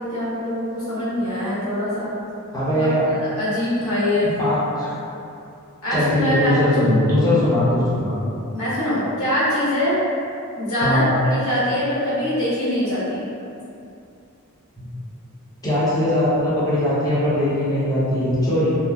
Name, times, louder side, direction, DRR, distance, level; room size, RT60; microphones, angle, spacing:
voice 1, 0.0-2.1 2.8-4.3 5.8-6.6 8.5-10.0 10.6-13.2, left 1 dB, 65° left, -11 dB, 1.1 m, -23 dB
voice 2, 2.5-3.1 4.4-4.9 5.9-8.2 10.8-11.1 14.8-14.9 15.6-18.8, left 1 dB, 15° left, -11 dB, 0.8 m, -20 dB
2.9 x 2.0 x 2.3 m, 2.6 s
head